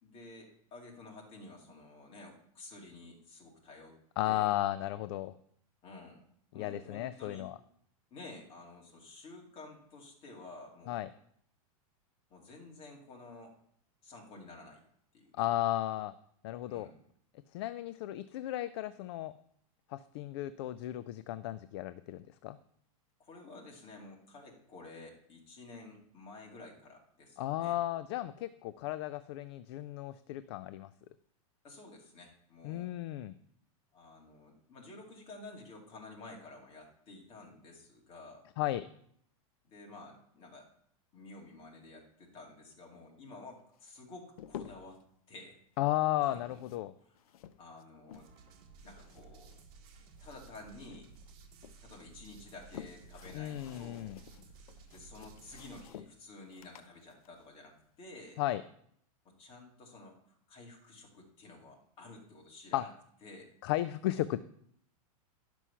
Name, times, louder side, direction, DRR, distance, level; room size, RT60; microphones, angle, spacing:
voice 1, 0.0-4.0 4.2-4.6 5.8-6.2 6.5-7.5 8.1-11.1 12.3-13.5 14.0-14.8 15.1-15.5 16.7-17.0 23.2-27.8 31.6-32.9 33.9-38.5 39.6-40.7 41.1-45.0 45.3-45.6 46.2-46.6 47.0-47.2 47.6-48.3 48.8-49.5 50.2-51.1 51.8-54.2 54.4-54.5 54.9-58.4 59.2-62.9 63.2-63.5, left 2 dB, 30° left, -1 dB, 2.4 m, -51 dB
voice 2, 4.2-5.3 6.5-7.6 10.9-11.1 15.4-16.1 16.4-16.9 17.5-19.4 19.9-22.6 27.4-30.9 32.6-33.3 38.6-38.8 45.8-46.9 53.3-54.2 58.4-58.6 62.7-62.8 63.6-64.4, left 14 dB, 45° left, 14 dB, 0.4 m, -34 dB
sound 1, 43.7-45.0 46.2-48.5 48.8-50.6 50.9-51.8 52.3-58.4, left 10 dB, 80° left, 0.7 m, -52 dB
sound 2, 48.1-55.9, right 5 dB, 45° right, 1.9 m, -56 dB
11.0 x 6.2 x 5.6 m, 0.69 s
supercardioid pair, 160°, 18 cm